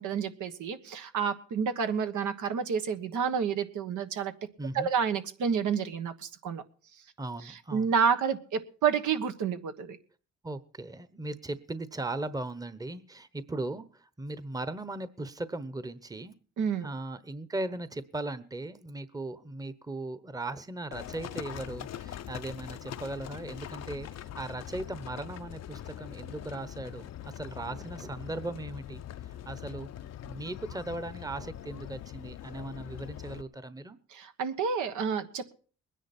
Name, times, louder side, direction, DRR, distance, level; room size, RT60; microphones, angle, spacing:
voice 1, 0.0-4.3 4.7-6.6 7.4-10.0 16.6-16.9 34.1-35.5, right 6 dB, 75° right, 8 dB, 1.4 m, -29 dB
voice 2, 4.6-4.9 7.2-7.9 10.4-16.3 16.8-29.9 30.2-34.0, right 2 dB, 10° right, 14 dB, 1.0 m, -38 dB
Livestock farm animals working animals, 20.9-33.4, left 11 dB, 60° left, 0.7 m, -42 dB
21.5 x 10.0 x 4.3 m, 0.40 s
cardioid pair, 90°, 30 cm